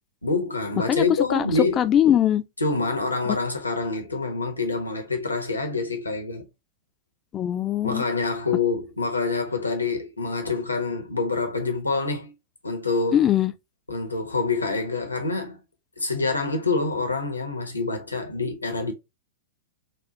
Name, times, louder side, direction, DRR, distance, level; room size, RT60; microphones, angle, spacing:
voice 1, 0.2-1.8 2.6-6.5 7.8-12.3 12.6-13.3 13.9-15.6 16.0-18.9, left 3 dB, 80° left, 1.0 m, -26 dB
voice 2, 1.8-2.4 7.3-8.0 13.1-13.5, left 10 dB, 25° left, 0.4 m, -21 dB
4.3 x 2.3 x 2.8 m
figure-of-eight pair, 100°, 0 cm